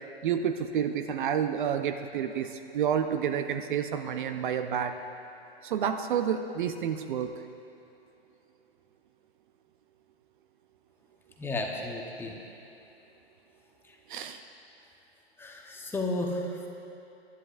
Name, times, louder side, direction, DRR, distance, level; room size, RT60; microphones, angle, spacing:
voice 1, 0.2-4.9 5.6-7.3 14.1-14.4, right 8 dB, 50° right, 8 dB, 0.7 m, -29 dB
voice 2, 11.4-12.4 13.9-14.0 15.4-16.7, left 2 dB, 5° left, 0 dB, 0.9 m, -33 dB
23.0 x 11.0 x 2.5 m, 2.8 s
hypercardioid pair, 130°, 32 cm